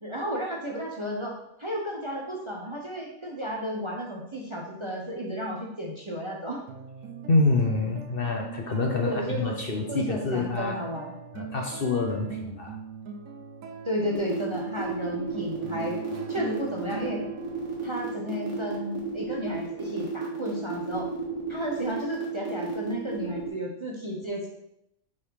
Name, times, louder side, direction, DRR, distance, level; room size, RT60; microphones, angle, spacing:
voice 1, 0.0-6.6 9.0-9.6 9.9-11.1 13.8-16.0 16.3-17.2 17.8-21.1 21.5-24.5, equal, 25° right, -1 dB, 0.8 m, -33 dB
sound 1, 6.7-19.4, right 5 dB, 70° right, 1.0 m, -42 dB
voice 2, 7.3-10.8 11.3-12.8, left 3 dB, 50° left, 2 dB, 0.9 m, -26 dB
sound 2, 14.1-23.5, right 5 dB, 90° right, 2.2 m, -32 dB
6.0 x 4.2 x 4.7 m, 0.81 s
omnidirectional pair, 1.4 m